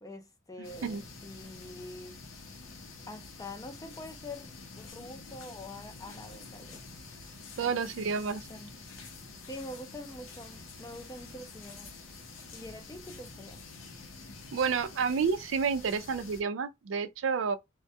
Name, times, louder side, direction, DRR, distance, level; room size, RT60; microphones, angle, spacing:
voice 1, 0.0-2.2 3.1-6.9 7.6-7.8 8.2-8.7 9.5-11.9 12.5-13.6, left 1 dB, 20° left, 0.4 m, -45 dB
sound 1, 0.6-16.4, left 3 dB, 80° left, 0.6 m, -48 dB
voice 2, 7.6-8.4 14.5-17.6, right 5 dB, 70° right, 0.4 m, -30 dB
2.2 x 2.1 x 2.7 m
head